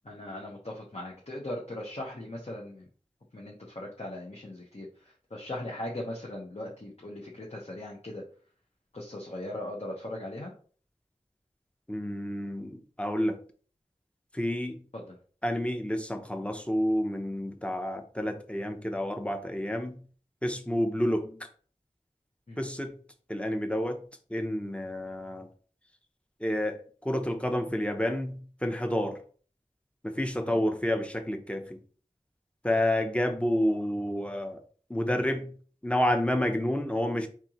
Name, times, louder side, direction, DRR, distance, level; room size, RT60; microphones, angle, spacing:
voice 1, 0.0-2.8 3.3-4.9 5.3-8.2 8.9-10.5 14.9-15.1 22.5-22.6 30.5-30.6, left 1 dB, 50° left, 1.0 m, -39 dB
voice 2, 11.9-13.4 14.3-14.8 15.4-20.0 20.4-21.4 22.6-23.0 23.3-24.0 24.3-25.5 26.4-29.2 30.0-31.8 32.6-34.6 34.9-35.5 35.8-37.3, left 1 dB, 10° left, 0.7 m, -29 dB
4.5 x 3.7 x 3.0 m
wide cardioid pair, 45°, 14 cm